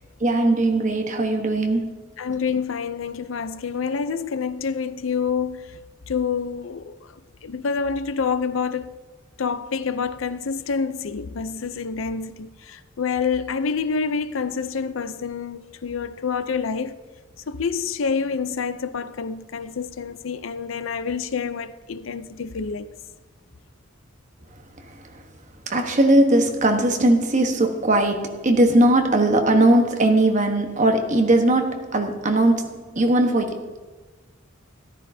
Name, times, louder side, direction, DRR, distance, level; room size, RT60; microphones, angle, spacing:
voice 1, 0.2-2.0 24.9-25.0 25.7-33.8, right 1 dB, 40° right, 1.2 m, -19 dB
voice 2, 2.2-5.8 6.1-7.1 7.4-8.9 9.4-17.0 17.5-22.9, left 5 dB, 90° left, 0.6 m, -27 dB
13.5 x 12.5 x 2.7 m
head